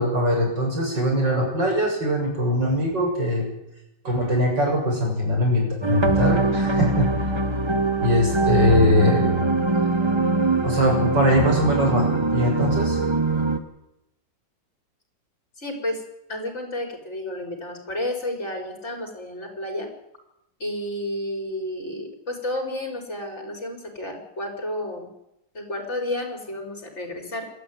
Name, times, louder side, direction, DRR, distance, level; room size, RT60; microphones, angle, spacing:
voice 1, 0.0-3.5 4.0-7.1 8.0-9.3 10.6-13.0, left 1 dB, 75° right, 1 dB, 7.9 m, -22 dB
sound 1, 5.8-13.6, right 3 dB, 15° right, 1.5 m, -22 dB
voice 2, 15.6-16.0 16.3-19.9 20.6-25.1 25.5-27.5, left 1 dB, 35° left, 4 dB, 5.2 m, -31 dB
28.0 x 13.0 x 9.5 m, 0.85 s
omnidirectional pair, 1.9 m